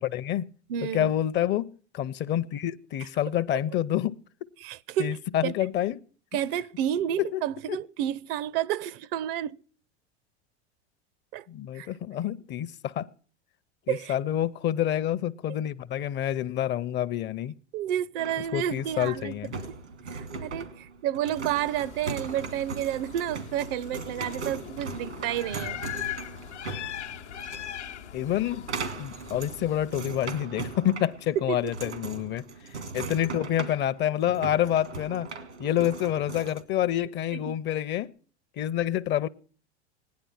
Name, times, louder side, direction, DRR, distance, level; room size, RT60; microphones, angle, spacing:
voice 1, 0.0-0.5 0.8-4.2 5.0-6.1 7.2-7.4 7.7-7.8 11.5-13.1 13.9-17.5 18.5-19.5 28.1-28.7 29.0-32.5 32.9-35.3 35.6-38.1 38.6-39.3, left 11 dB, 35° left, 0.5 m, -28 dB
voice 2, 0.7-1.1 4.6-5.5 6.3-9.6 11.3-11.4 11.7-11.9 13.9-14.1 17.7-19.3 19.7-19.8 20.1-25.8 31.5-31.9 33.0-33.1 37.3-37.6, right 11 dB, 55° right, 0.6 m, -30 dB
sound 1, 18.2-36.6, right 4 dB, 90° right, 2.0 m, -39 dB
sound 2, 21.5-29.9, left 11 dB, 90° left, 0.8 m, -40 dB
16.5 x 10.5 x 5.7 m
hypercardioid pair, 95°, 33 cm